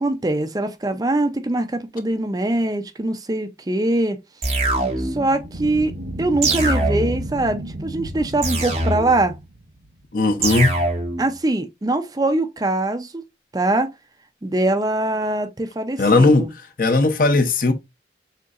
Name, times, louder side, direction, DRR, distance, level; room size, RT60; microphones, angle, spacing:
voice 1, 0.0-4.2 5.0-5.9 6.2-9.4 11.2-13.2 13.5-13.9 14.4-16.5, right 2 dB, 20° right, 0.4 m, -22 dB
sound 1, 4.4-5.3 6.4-7.3 8.4-9.3 10.4-11.3, right 2 dB, 35° right, 1.5 m, -23 dB
sound 2, 5.1-10.0, right 1 dB, 90° right, 0.9 m, -33 dB
voice 2, 10.1-10.8 16.0-16.5 16.8-17.7, left 3 dB, 50° left, 0.6 m, -17 dB
6.5 x 2.8 x 2.4 m
head